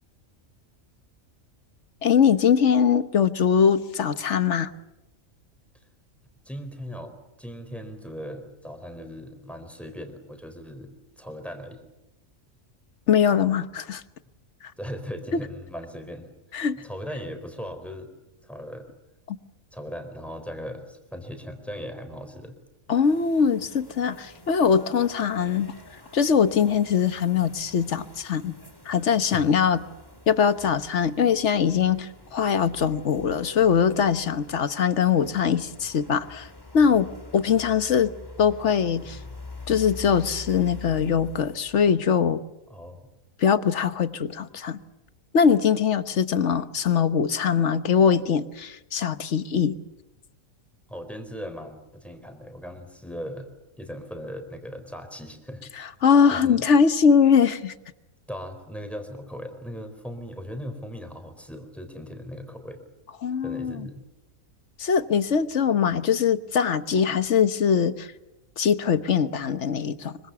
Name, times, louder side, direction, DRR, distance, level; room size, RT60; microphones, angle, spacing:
voice 1, 2.0-4.7 13.1-14.0 16.5-16.8 22.9-25.7 26.1-28.5 28.9-29.8 30.3-36.5 36.7-38.1 38.4-39.2 39.7-42.4 43.4-44.8 45.3-49.8 55.8-57.7 63.2-63.9 64.8-68.1 68.6-70.2, left 7 dB, 60° left, 12 dB, 1.4 m, -22 dB
voice 2, 6.4-11.8 14.8-16.3 16.8-18.1 18.4-18.9 19.7-22.6 29.3-29.5 42.7-43.1 50.9-53.5 53.8-55.6 56.3-56.7 58.3-62.8 63.4-63.9, equal, ahead, 6 dB, 4.2 m, -38 dB
sound 1, 23.0-42.1, left 2 dB, 15° left, 2.5 m, -45 dB
25.5 x 24.0 x 7.1 m, 0.96 s
omnidirectional pair, 1.4 m